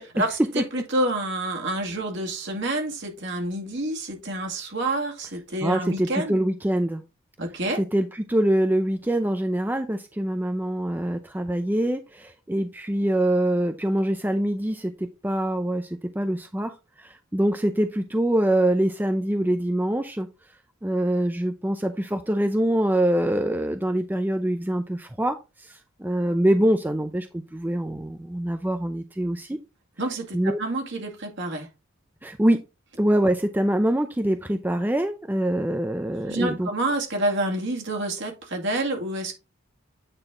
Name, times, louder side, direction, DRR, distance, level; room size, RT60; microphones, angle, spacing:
voice 1, 0.1-6.4 7.4-7.8 30.0-31.7 36.3-39.3, right 1 dB, 60° right, 2.1 m, -28 dB
voice 2, 5.6-7.0 7.8-16.7 17.0-20.3 20.8-29.6 30.3-30.6 32.2-32.6 33.0-36.7, right 1 dB, 10° right, 0.5 m, -24 dB
8.9 x 4.1 x 3.6 m
head